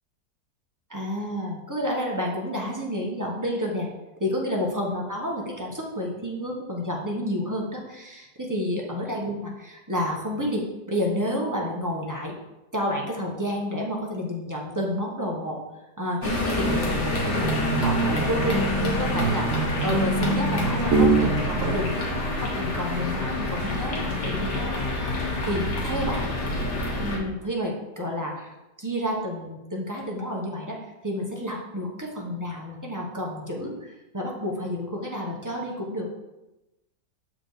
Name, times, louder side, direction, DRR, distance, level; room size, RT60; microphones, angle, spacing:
voice 1, 0.9-3.9 4.2-12.3 12.7-15.6 16.0-26.3 27.0-36.1, equal, 15° right, -2 dB, 0.7 m, -30 dB
sound 1, 16.2-27.2, left 2 dB, 90° left, 1.8 m, -28 dB
sound 2, 16.6-26.8, right 4 dB, 65° right, 0.8 m, -28 dB
6.8 x 4.5 x 3.9 m, 1.0 s
omnidirectional pair, 1.7 m